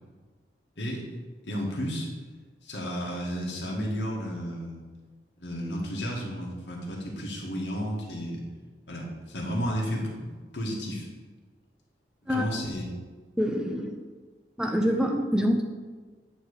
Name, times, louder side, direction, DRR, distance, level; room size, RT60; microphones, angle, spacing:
voice 1, 1.4-2.1 2.6-4.8 5.4-8.4 8.9-11.1 12.2-12.9, equal, 80° left, -2 dB, 1.9 m, -32 dB
voice 2, 13.4-14.0 14.6-15.6, equal, 5° right, 3 dB, 0.5 m, -25 dB
8.9 x 3.3 x 6.6 m, 1.4 s
head